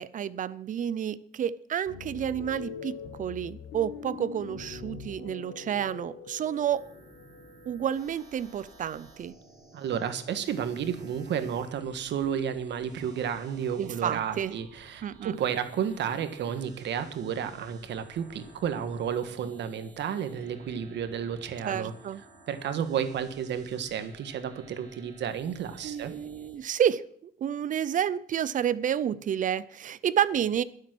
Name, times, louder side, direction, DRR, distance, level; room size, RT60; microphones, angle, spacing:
voice 1, 0.0-6.9 7.7-9.3 13.8-14.5 15.0-15.4 21.6-22.2 25.8-30.6, right 9 dB, 40° right, 0.6 m, -30 dB
sound 1, 1.9-9.3, left 5 dB, 65° left, 3.3 m, -44 dB
sound 2, 6.6-26.6, right 2 dB, 20° right, 4.0 m, -54 dB
voice 2, 9.7-21.9 22.5-26.1, right 8 dB, 65° right, 1.5 m, -32 dB
21.5 x 7.5 x 6.1 m
cardioid pair, 175°, 20 cm